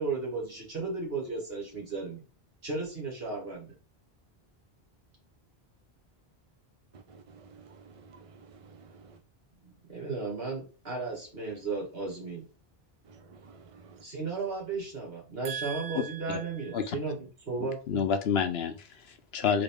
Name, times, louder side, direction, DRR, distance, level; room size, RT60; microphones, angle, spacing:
voice 1, 0.0-2.2 2.6-3.7 9.6-12.5 14.0-18.0, right 4 dB, 65° right, -1 dB, 2.2 m, -35 dB
voice 2, 6.9-8.3 8.7-9.1 13.4-14.0 15.4-16.4, right 8 dB, 45° right, 5 dB, 0.5 m, -43 dB
voice 3, 15.9-16.4 16.7-17.0 17.6-19.6, left 7 dB, 75° left, 7 dB, 1.0 m, -30 dB
3.9 x 3.7 x 3.6 m, 0.34 s
omnidirectional pair, 1.1 m